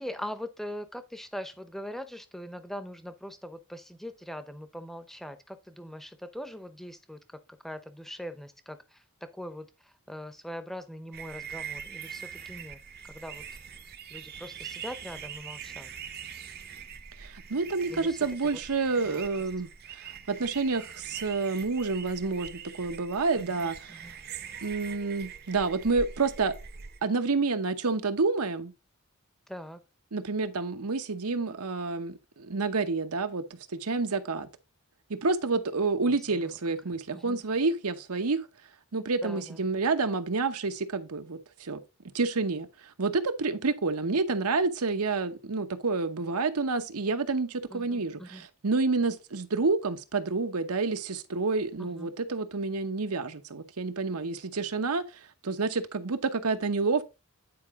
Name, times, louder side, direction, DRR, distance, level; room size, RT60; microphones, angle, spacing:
voice 1, 0.0-7.4 7.6-12.8 13.1-13.4 14.1-15.9 17.9-18.3 19.1-19.2 23.3-24.2 29.5-29.8 36.1-36.4 37.1-37.4 39.2-39.6 47.7-48.5 51.8-52.1, equal, ahead, 0.7 m, -41 dB
sound 1, 11.1-27.0, right 7 dB, 45° right, 0.7 m, -43 dB
voice 2, 17.2-23.8 24.6-26.5 27.0-28.7 30.1-34.5 35.1-38.5 38.9-41.8 42.1-42.7 43.0-57.0, right 3 dB, 85° right, 0.9 m, -29 dB
9.6 x 4.8 x 3.6 m
head